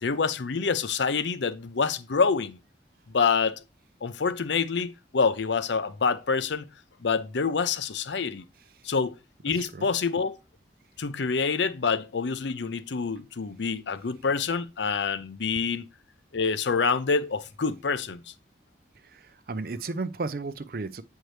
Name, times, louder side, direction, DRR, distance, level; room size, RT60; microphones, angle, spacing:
voice 1, 0.0-2.6 3.1-3.6 4.0-6.7 7.0-8.5 8.8-9.2 9.4-10.4 11.0-15.9 16.3-18.2, left 5 dB, 80° left, 0.6 m, -27 dB
voice 2, 9.6-9.9 19.0-21.0, right 3 dB, 50° right, 0.5 m, -34 dB
7.9 x 4.5 x 3.2 m
head